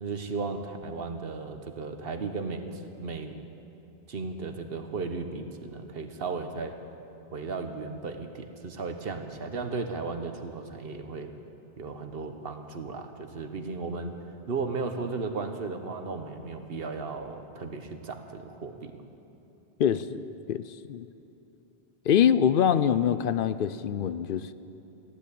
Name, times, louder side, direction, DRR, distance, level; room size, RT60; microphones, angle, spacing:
voice 1, 0.0-3.3 4.1-6.8 7.3-11.3 11.8-14.1 14.5-19.0, right 4 dB, 70° right, 7 dB, 1.2 m, -35 dB
voice 2, 19.8-20.6 20.9-21.1 22.1-24.5, left 9 dB, 65° left, 14 dB, 0.7 m, -24 dB
15.5 x 10.0 x 8.4 m, 2.9 s
omnidirectional pair, 1.0 m